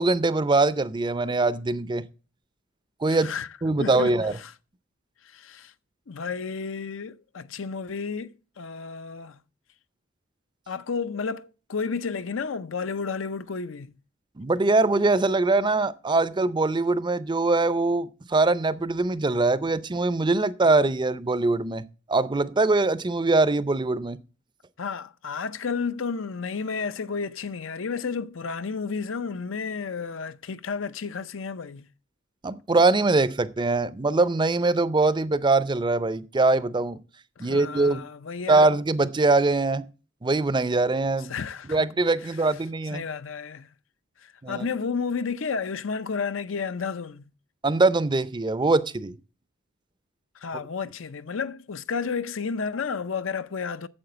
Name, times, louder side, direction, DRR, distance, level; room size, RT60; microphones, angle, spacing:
voice 1, 0.0-2.0 3.0-3.3 3.6-4.3 14.4-24.2 32.4-37.0 37.4-38.0 38.5-39.8 40.2-41.3 41.7-43.0 44.4-44.7 47.6-49.1, right 3 dB, 25° right, 0.5 m, -22 dB
voice 2, 3.1-3.5 3.8-4.5 5.2-5.7 6.1-9.4 10.7-13.9 24.8-31.9 37.4-38.7 41.2-41.9 42.2-42.5 42.9-43.7 44.2-47.3 50.4-53.9, left 5 dB, 70° left, 0.6 m, -32 dB
8.8 x 7.6 x 7.9 m
head